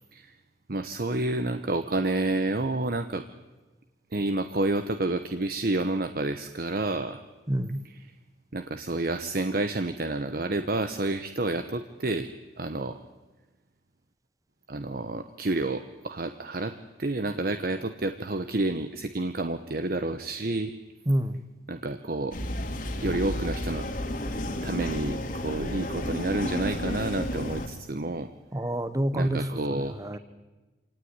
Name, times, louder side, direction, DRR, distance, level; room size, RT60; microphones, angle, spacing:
voice 1, 0.7-3.3 4.1-7.2 8.5-13.0 14.7-20.7 21.7-22.4 23.0-23.9 24.6-28.3 29.1-30.0, right 2 dB, 55° right, 9 dB, 1.0 m, -29 dB
voice 2, 7.5-7.8 21.1-21.4 28.5-29.5 29.8-30.2, right 1 dB, 20° right, 13 dB, 1.1 m, -27 dB
sound 1, 22.3-27.7, left 1 dB, 50° left, 2.6 m, -32 dB
26.5 x 18.5 x 9.7 m, 1.2 s
head